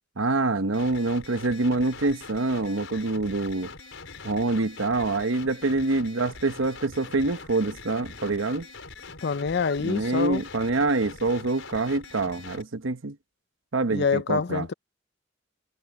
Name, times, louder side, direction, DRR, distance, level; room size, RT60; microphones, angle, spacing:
voice 1, 0.2-3.7 4.2-8.7 9.8-13.2 13.7-14.7, right 3 dB, 85° right, 1.1 m, -26 dB
sound 1, 0.7-12.6, left 4 dB, 85° left, 4.8 m, -43 dB
voice 2, 9.2-10.4 13.9-14.7, left 5 dB, 60° left, 0.5 m, -26 dB
head